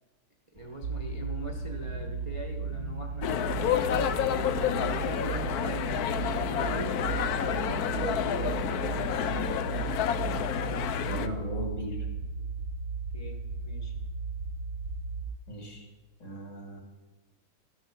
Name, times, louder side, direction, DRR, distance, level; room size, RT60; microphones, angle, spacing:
sound 1, 0.5-5.9, right 3 dB, 35° left, 0.7 m, -49 dB
voice 1, 0.5-3.7 4.2-7.0 7.3-9.3 13.1-13.9, right 2 dB, 25° right, 1 dB, 0.7 m, -41 dB
sound 2, 0.8-15.2, right 4 dB, 65° right, 1.3 m, -35 dB
sound 3, 3.2-11.3, left 9 dB, 75° left, 0.8 m, -29 dB
voice 2, 11.1-12.1 15.5-15.8 16.2-16.8, left 1 dB, 55° left, 2 dB, 3.0 m, -38 dB
14.0 x 6.4 x 7.3 m, 1.2 s
omnidirectional pair, 2.3 m